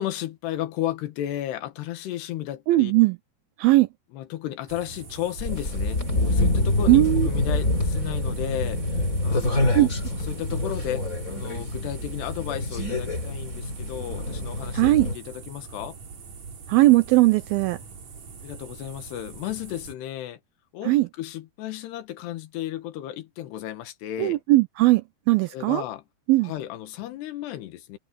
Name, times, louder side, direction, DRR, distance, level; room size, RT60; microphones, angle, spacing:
voice 1, 0.0-2.9 4.1-16.0 18.4-20.4 20.7-24.4 25.5-26.0 26.4-28.0, left 12 dB, 75° left, 3.6 m, -34 dB
voice 2, 2.7-3.2 3.6-3.9 6.9-7.3 9.8-9.9 14.7-15.1 16.7-17.8 20.9-21.1 24.2-25.0 25.3-25.8 26.3-26.5, right 18 dB, 85° right, 2.1 m, -18 dB
sound 1, 4.7-20.0, right 5 dB, 45° right, 3.8 m, -43 dB
sound 2, 5.4-15.1, left 2 dB, 20° left, 3.6 m, -26 dB
omnidirectional pair, 4.9 m